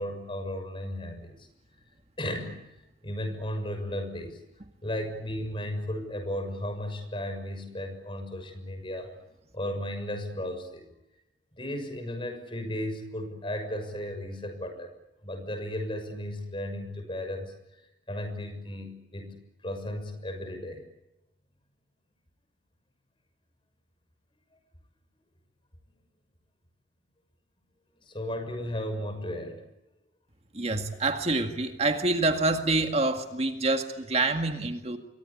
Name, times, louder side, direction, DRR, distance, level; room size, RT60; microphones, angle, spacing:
voice 1, 0.0-1.5 2.2-2.8 3.0-4.4 4.8-9.1 9.5-10.9 11.5-14.9 15.2-17.5 18.1-20.8 28.0-29.6, left 1 dB, 30° left, 8 dB, 6.5 m, -35 dB
voice 2, 30.5-35.0, right 2 dB, 35° right, 6 dB, 2.0 m, -27 dB
28.5 x 24.0 x 8.5 m, 0.93 s
head